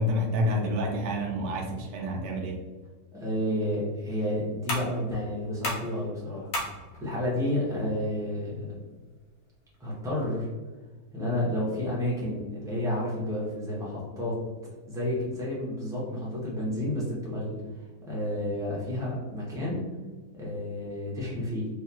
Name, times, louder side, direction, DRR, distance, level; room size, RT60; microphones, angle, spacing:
voice 1, 0.0-2.6, left 1 dB, 80° right, 1 dB, 1.2 m, -28 dB
voice 2, 3.1-6.7 7.0-8.7 9.8-10.5 11.1-14.4 14.9-17.6 18.0-19.8 20.3-21.7, left 1 dB, 5° right, -6 dB, 0.7 m, -30 dB
sound 1, 3.2-10.1, left 1 dB, 60° left, 1.2 m, -40 dB
3.7 x 2.7 x 2.9 m, 1.3 s
omnidirectional pair, 1.8 m